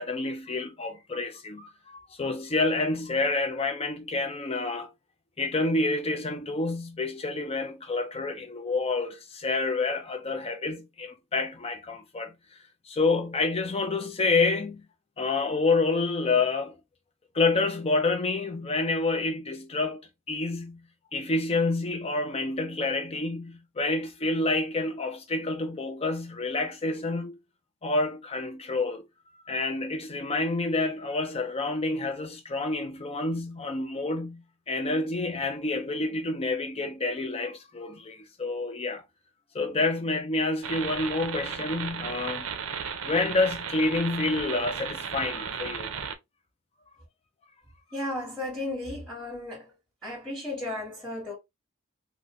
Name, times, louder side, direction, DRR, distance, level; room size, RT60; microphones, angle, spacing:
voice 1, 0.0-4.9 5.4-12.3 12.9-14.8 15.2-16.8 17.3-20.0 20.3-20.8 21.1-27.3 27.8-29.0 29.5-39.0 39.5-42.5 43.0-45.9, left 3 dB, 30° left, 0.5 m, -28 dB
sound 1, 40.6-46.2, right 7 dB, 65° right, 0.5 m, -35 dB
voice 2, 47.9-49.7 50.0-51.3, left 1 dB, 5° left, 2.0 m, -34 dB
3.1 x 2.6 x 2.6 m
head